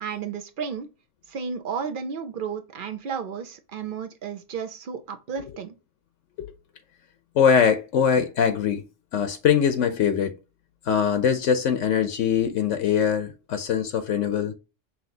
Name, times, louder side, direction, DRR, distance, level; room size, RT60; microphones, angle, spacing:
voice 1, 0.0-0.9 1.3-5.8, right 6 dB, 50° right, 0.7 m, -33 dB
voice 2, 7.3-8.8 9.1-10.4 10.8-14.5, left 7 dB, 80° left, 1.0 m, -22 dB
5.8 x 2.7 x 2.8 m
omnidirectional pair, 1.3 m